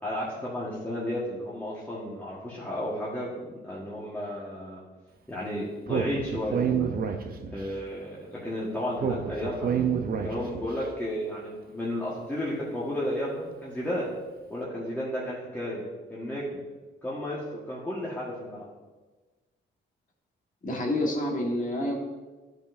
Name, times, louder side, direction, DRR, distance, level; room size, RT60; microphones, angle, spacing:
voice 1, 0.0-4.8 5.3-6.9 7.5-9.7 10.2-14.1 14.5-15.8 16.1-16.6 17.0-18.6, left 1 dB, 10° left, -7 dB, 1.5 m, -33 dB
Speech, 5.9-7.7 9.0-10.7, right 7 dB, 50° right, 0.7 m, -28 dB
voice 2, 20.6-21.9, left 1 dB, 40° left, 0 dB, 1.6 m, -28 dB
11.0 x 5.2 x 2.7 m, 1.3 s
cardioid pair, 90°, 20 cm